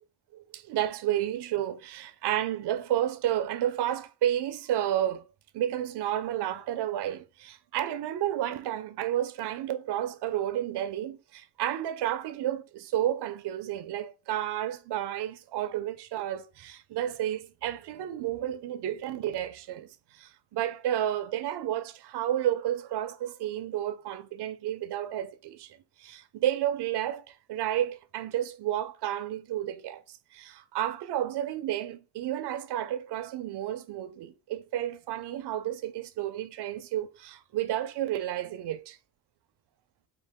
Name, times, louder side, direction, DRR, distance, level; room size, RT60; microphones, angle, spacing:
voice 1, 0.3-5.2 5.5-19.9 20.1-39.0, right 11 dB, 65° right, 0.6 m, -31 dB
4.6 x 2.4 x 3.5 m
cardioid pair, 100°, 42 cm